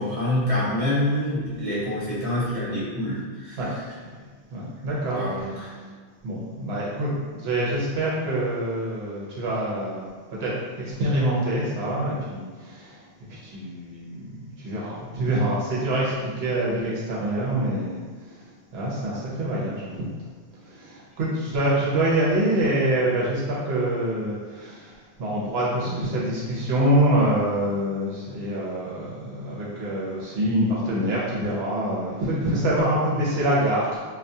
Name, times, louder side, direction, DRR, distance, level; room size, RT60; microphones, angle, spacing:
voice 1, 0.0-3.6 5.1-5.7, left 1 dB, 35° right, -8 dB, 0.8 m, -26 dB
voice 2, 4.5-5.2 6.2-10.1 10.4-13.0 13.3-18.4 18.7-20.1 20.6-24.9 25.2-34.1, right 1 dB, 75° right, -6 dB, 0.9 m, -25 dB
2.3 x 2.3 x 2.6 m, 1.5 s
omnidirectional pair, 1.1 m